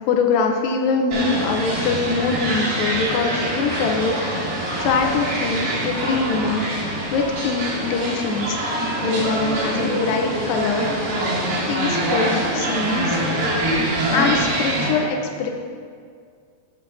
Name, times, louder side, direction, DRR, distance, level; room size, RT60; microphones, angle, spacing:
voice 1, 0.1-4.5 4.8-10.9 11.7-13.2 13.6-13.7 14.1-15.5, left 4 dB, 90° left, 3 dB, 1.9 m, -23 dB
sound 1, 1.1-14.9, right 1 dB, 65° right, 3.9 m, -24 dB
18.5 x 7.2 x 2.6 m, 2.2 s
omnidirectional pair, 4.8 m